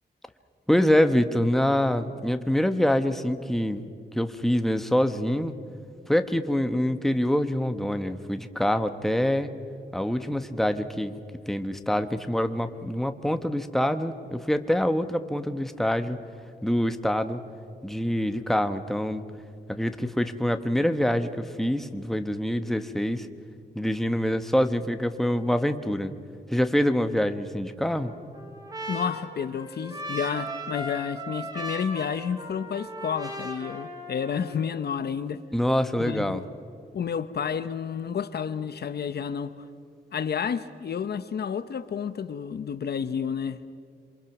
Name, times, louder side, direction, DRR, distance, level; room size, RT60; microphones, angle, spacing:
voice 1, 0.7-3.8 4.1-5.5 6.1-9.5 9.9-11.1 11.5-16.2 16.6-17.4 17.8-19.2 19.7-23.3 23.7-26.1 26.5-28.1 35.5-36.4, left 1 dB, ahead, 1.1 m, -25 dB
Trumpet, 27.9-34.6, equal, 20° right, 3.7 m, -37 dB
voice 2, 28.9-35.4 36.0-36.4 36.9-39.6 40.1-43.7, left 7 dB, 65° left, 0.9 m, -30 dB
27.0 x 24.5 x 6.0 m
wide cardioid pair, 100°, 18 cm